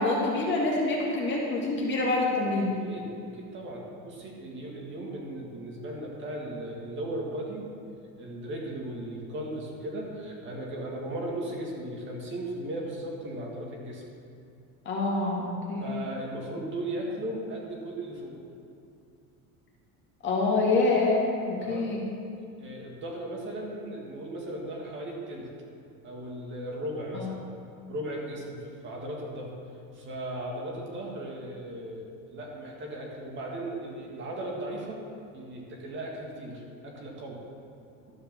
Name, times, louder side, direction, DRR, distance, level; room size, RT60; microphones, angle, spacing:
voice 1, 0.0-2.7 14.9-16.0 20.2-21.2 21.5-22.0 27.1-27.3, left 3 dB, 35° left, -3 dB, 2.1 m, -26 dB
voice 2, 2.6-7.7 8.2-14.0 15.8-18.4 21.6-21.9 22.6-25.5 26.0-27.4 27.9-29.5 29.9-35.0 35.3-37.4, right 1 dB, 35° right, -1 dB, 1.7 m, -37 dB
12.0 x 5.2 x 7.2 m, 2.4 s
cardioid pair, 165°, 34 cm